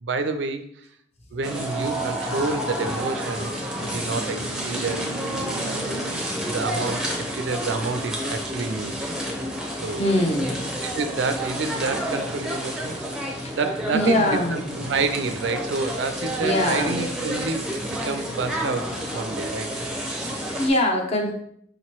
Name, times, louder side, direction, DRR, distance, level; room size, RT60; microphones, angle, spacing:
voice 1, 0.0-0.8 1.3-6.2 6.5-9.2 9.8-10.0 10.8-13.1 13.5-14.2 14.5-19.7, right 4 dB, 75° right, 9 dB, 0.4 m, -29 dB
sound 1, 1.4-20.7, equal, 5° right, 0.6 m, -30 dB
voice 2, 10.0-10.7 13.4-13.6 13.9-14.8 16.4-17.0 20.2-21.3, left 1 dB, 35° left, 1 dB, 0.7 m, -23 dB
5.0 x 3.0 x 2.9 m, 0.68 s
head